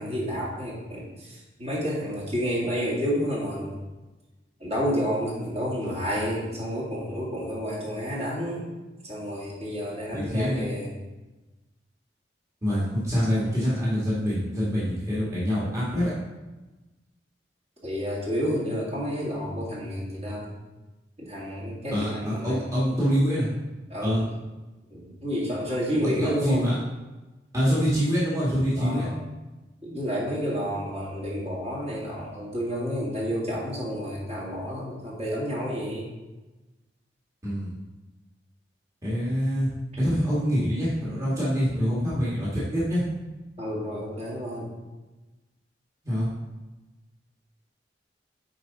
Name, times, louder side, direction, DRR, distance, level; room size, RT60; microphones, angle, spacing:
voice 1, 0.0-3.8 4.6-8.7 9.0-11.0 17.8-20.5 21.2-22.7 23.9-24.4 24.9-26.7 28.8-29.2 29.8-36.1 43.6-44.7, equal, 40° right, -6 dB, 2.2 m, -30 dB
voice 2, 10.1-10.7 12.6-16.1 21.9-23.5 24.0-24.3 26.2-26.8 27.5-29.1 37.4-37.7 39.0-43.0 46.0-46.3, equal, 20° right, -9 dB, 1.8 m, -25 dB
7.8 x 4.8 x 4.0 m, 1.1 s
head